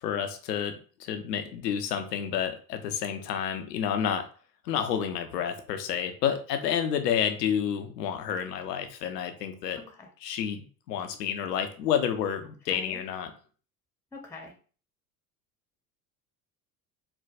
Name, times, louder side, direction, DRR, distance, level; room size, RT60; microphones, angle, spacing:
voice 1, 0.0-4.3 4.6-9.8 10.2-13.3, left 8 dB, 90° left, 7 dB, 0.6 m, -30 dB
voice 2, 9.8-10.1 12.7-13.0 14.1-14.5, left 3 dB, 5° left, 3 dB, 0.6 m, -44 dB
4.5 x 2.2 x 2.4 m, 0.40 s
hypercardioid pair, 75°, 47 cm